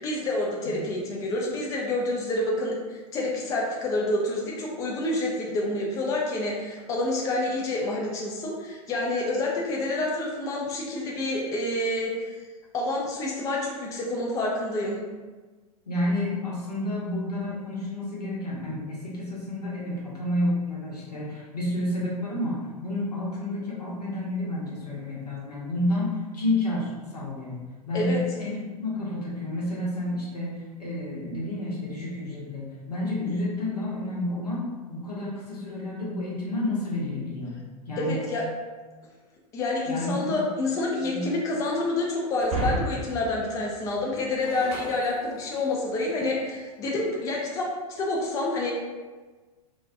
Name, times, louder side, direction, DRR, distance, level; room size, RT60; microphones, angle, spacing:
voice 1, 0.0-12.4 12.7-15.0 27.9-28.2 38.0-38.4 39.5-48.7, left 2 dB, 15° left, -2 dB, 0.3 m, -28 dB
voice 2, 15.9-37.6 37.9-38.3 39.9-40.4 41.0-41.3, left 1 dB, 80° left, -5 dB, 0.8 m, -30 dB
Shatter, 42.4-45.9, right 2 dB, 40° right, 0.9 m, -34 dB
2.4 x 2.2 x 2.5 m, 1.3 s
figure-of-eight pair, 90°, 20 cm